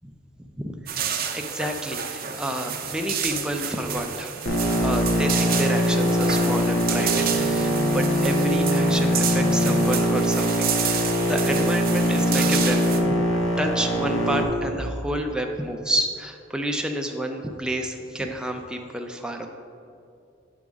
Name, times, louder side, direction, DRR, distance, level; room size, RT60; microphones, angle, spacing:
voice 1, 0.6-1.1 1.3-4.3 4.8-13.2 13.6-19.5, right 1 dB, 5° right, 3 dB, 0.5 m, -29 dB
sound 1, 0.9-13.0, right 6 dB, 50° right, 0.5 m, -29 dB
sound 2, 4.5-14.4, equal, 80° left, 1.0 m, -22 dB
8.4 x 3.6 x 5.1 m, 2.4 s
head